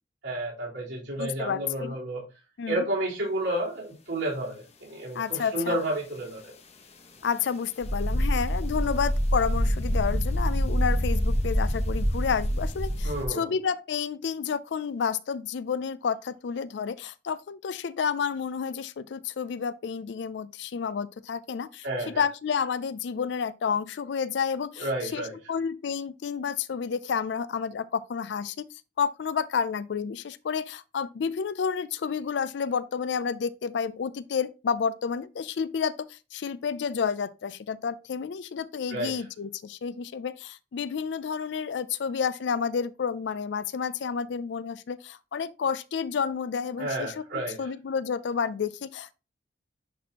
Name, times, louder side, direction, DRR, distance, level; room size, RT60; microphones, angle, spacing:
voice 1, 0.2-2.2 2.7-6.4 13.0-13.5 21.8-22.2 24.8-25.3 38.9-39.2 46.8-47.7, right 1 dB, 85° right, 3.7 m, -31 dB
voice 2, 1.2-1.9 2.6-2.8 5.1-5.8 7.2-28.6 29.0-49.1, left 6 dB, 65° left, 0.4 m, -30 dB
sound 1, 7.8-13.2, equal, 35° left, 0.9 m, -26 dB
10.0 x 4.3 x 2.9 m
head